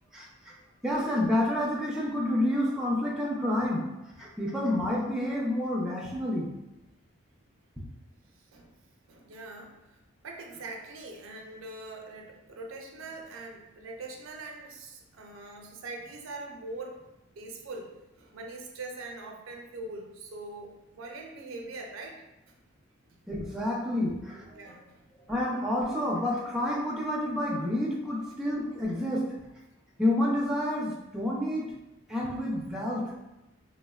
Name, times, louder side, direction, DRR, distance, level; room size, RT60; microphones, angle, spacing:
voice 1, 0.8-6.5 23.3-24.5 25.3-29.3 30.0-31.7 32.1-33.1, left 1 dB, 5° right, -4 dB, 0.4 m, -29 dB
voice 2, 9.1-17.1 17.4-22.2 23.1-23.2 24.5-25.0, right 2 dB, 75° right, 2 dB, 0.4 m, -42 dB
3.3 x 2.1 x 2.3 m, 0.98 s
head